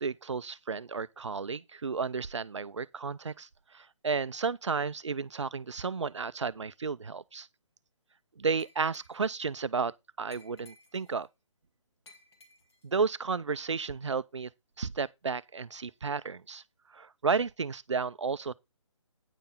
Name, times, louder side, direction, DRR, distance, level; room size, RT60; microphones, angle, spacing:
voice 1, 0.0-7.5 8.4-11.3 12.8-14.5 14.8-16.6 16.9-18.5, right 5 dB, 60° right, 0.6 m, -32 dB
Glass, 8.6-9.4 10.3-11.2 12.1-12.9, left 2 dB, 55° left, 2.6 m, -58 dB
10.0 x 5.4 x 5.3 m
figure-of-eight pair, 145°, 17 cm